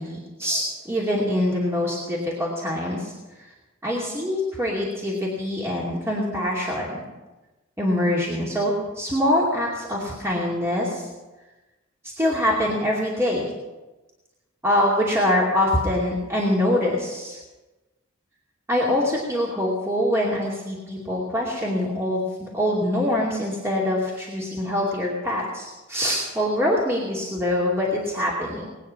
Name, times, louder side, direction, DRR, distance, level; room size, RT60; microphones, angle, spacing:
voice 1, 0.0-3.1 3.8-7.0 7.8-11.0 12.2-13.4 14.6-17.4 18.7-22.2 22.5-28.6, left 1 dB, 15° right, -5 dB, 2.6 m, -24 dB
20.0 x 9.5 x 5.8 m, 1.1 s
head